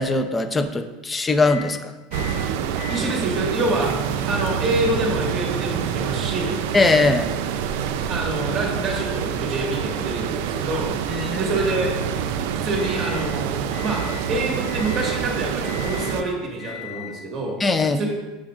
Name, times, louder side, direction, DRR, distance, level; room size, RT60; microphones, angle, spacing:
voice 1, 0.0-1.9 6.7-7.3 11.1-11.5 17.6-18.0, left 3 dB, 15° left, 8 dB, 0.5 m, -20 dB
sound 1, 1.4-1.7 2.1-2.4 2.8-13.3 13.7-14.3 14.7-15.2 15.6-16.2 16.6-17.1, equal, 40° left, 1.1 m, -40 dB
sound 2, 2.1-16.2, right 8 dB, 75° right, 0.5 m, -27 dB
voice 2, 2.9-3.9 4.3-6.6 8.1-10.9 11.4-11.9 12.6-14.0 14.3-17.6 18.0-18.1, right 2 dB, 30° right, -1 dB, 1.8 m, -26 dB
8.5 x 6.2 x 2.5 m, 1.2 s
supercardioid pair, 120°, 0 cm